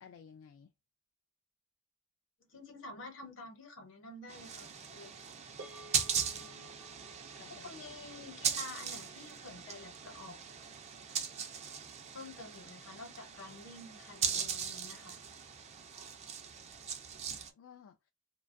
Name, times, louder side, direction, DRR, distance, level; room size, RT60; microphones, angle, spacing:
voice 1, 0.0-0.7 6.3-6.7 7.4-7.7 17.5-18.1, left 7 dB, 90° left, 0.3 m, -56 dB
voice 2, 2.4-5.1 7.6-10.4 12.1-15.2, left 2 dB, 70° left, 0.9 m, -49 dB
sound 1, 4.3-17.5, right 7 dB, 35° right, 0.4 m, -39 dB
sound 2, 5.6-10.1, right 1 dB, 65° right, 0.7 m, -56 dB
2.3 x 2.3 x 2.5 m
head